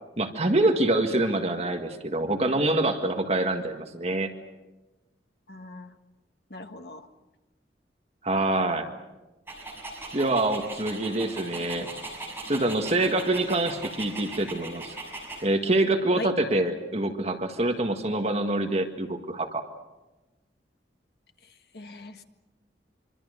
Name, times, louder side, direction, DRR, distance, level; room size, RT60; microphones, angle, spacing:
voice 1, 0.2-4.3 8.2-8.9 10.1-11.9 12.5-15.0 15.4-19.6, right 2 dB, 35° right, 5 dB, 1.8 m, -25 dB
voice 2, 5.5-5.9 6.5-7.1 16.2-16.3 21.4-22.2, left 1 dB, 65° left, 6 dB, 1.7 m, -39 dB
Dog, 9.5-15.4, right 2 dB, 15° right, 6.2 m, -39 dB
26.0 x 25.0 x 6.7 m, 1.1 s
head